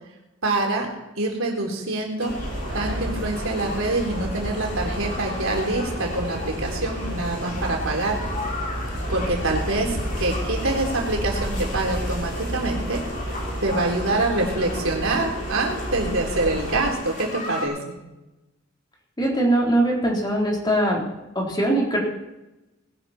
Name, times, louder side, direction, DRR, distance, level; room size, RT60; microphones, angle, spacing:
voice 1, 0.4-0.9 1.2-2.3 2.7-8.2 9.1-13.0 13.6-18.0, right 2 dB, 90° right, 0 dB, 3.7 m, -25 dB
sound 1, 2.2-17.7, left 2 dB, 40° left, 3.8 m, -36 dB
sound 2, 2.3-16.9, equal, 65° right, 4.2 m, -31 dB
voice 2, 19.2-21.0 21.4-22.0, right 1 dB, 20° left, -2 dB, 3.8 m, -21 dB
20.0 x 12.0 x 4.4 m, 0.99 s
head